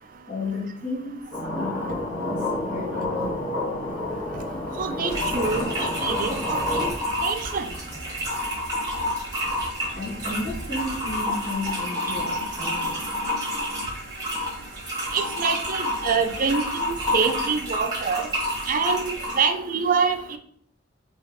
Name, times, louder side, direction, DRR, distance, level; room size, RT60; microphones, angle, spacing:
voice 1, 0.3-1.2 1.6-3.5 9.9-13.1, left 2 dB, 45° left, -7 dB, 1.6 m, -33 dB
sound 1, 1.3-6.9, left 1 dB, 75° left, 1.5 m, -29 dB
sound 2, 3.2-11.2, equal, 5° left, 0.8 m, -43 dB
voice 2, 4.8-6.9 7.2-7.7 15.1-18.3 18.7-20.4, right 5 dB, 45° right, 7 dB, 0.4 m, -26 dB
sound 3, 5.1-19.5, left 1 dB, 20° right, 1.4 m, -29 dB
3.3 x 3.1 x 3.5 m, 0.63 s
head